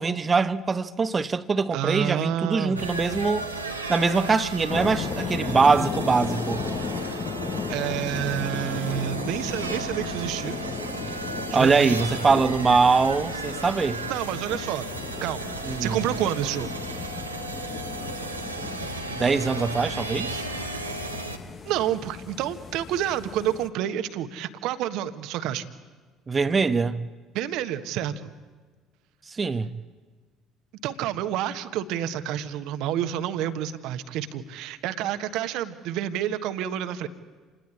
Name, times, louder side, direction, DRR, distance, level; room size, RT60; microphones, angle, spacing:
voice 1, 0.0-3.5 3.9-6.6 11.5-14.0 15.7-16.0 19.1-20.4 26.3-27.0 29.4-29.7, right 4 dB, 25° right, 1.0 m, -23 dB
voice 2, 1.7-2.9 7.0-7.3 7.7-10.6 11.5-12.0 14.1-14.9 15.2-16.7 21.6-25.7 27.3-28.3 30.8-37.1, right 11 dB, 55° right, 1.4 m, -29 dB
sound 1, 2.7-21.4, right 2 dB, 90° right, 1.6 m, -34 dB
sound 2, 4.7-23.7, left 5 dB, 35° left, 1.4 m, -35 dB
28.0 x 19.5 x 8.7 m
figure-of-eight pair, 55°, 0 cm